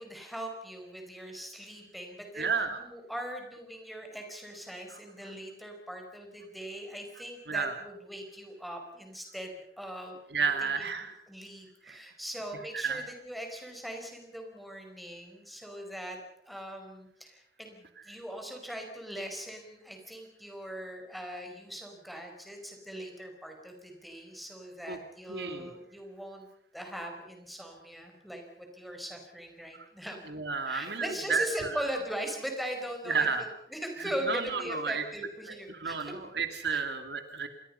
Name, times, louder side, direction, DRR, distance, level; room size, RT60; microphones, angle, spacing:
voice 1, 0.0-10.2 10.6-10.9 11.3-16.2 16.4-26.5 26.7-30.3 30.6-36.2 36.7-36.8, equal, ahead, 3 dB, 5.0 m, -40 dB
voice 2, 2.4-2.8 7.5-7.8 10.3-11.1 11.9-12.0 12.7-13.0 24.9-25.0 25.3-25.7 30.3-31.4 33.1-33.4 34.3-35.0 35.7-37.5, right 5 dB, 65° right, 7 dB, 2.4 m, -31 dB
28.0 x 21.5 x 5.6 m, 0.80 s
head